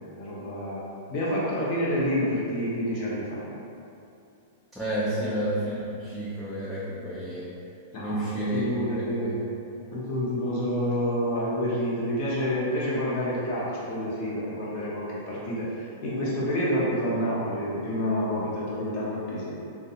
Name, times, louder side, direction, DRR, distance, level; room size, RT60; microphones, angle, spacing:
voice 1, 0.1-0.8 1.1-3.4 5.1-5.3 7.9-9.4 9.9-19.5, equal, 45° left, -7 dB, 0.8 m, -28 dB
voice 2, 4.7-7.5 8.0-9.3, right 1 dB, 5° right, -10 dB, 0.4 m, -30 dB
2.7 x 2.2 x 2.6 m, 2.7 s
hypercardioid pair, 130°, 0 cm